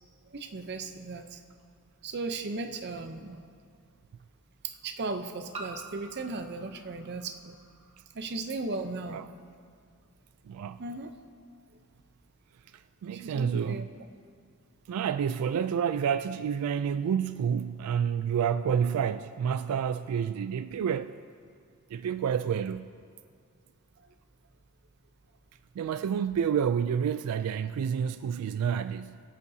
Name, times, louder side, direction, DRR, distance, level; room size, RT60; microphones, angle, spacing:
voice 1, 0.3-1.4 2.0-3.4 4.8-7.6 8.1-9.2 10.8-11.1 13.1-13.8, right 3 dB, 50° right, 0.6 m, -36 dB
sound 1, 1.6-1.7 3.3-3.4 5.5-8.0, right 3 dB, 25° right, 1.2 m, -47 dB
voice 2, 10.4-10.8 12.7-13.9 14.9-21.2 21.9-22.9 25.8-29.2, right 7 dB, 85° right, 0.3 m, -29 dB
23.0 x 8.3 x 2.7 m
head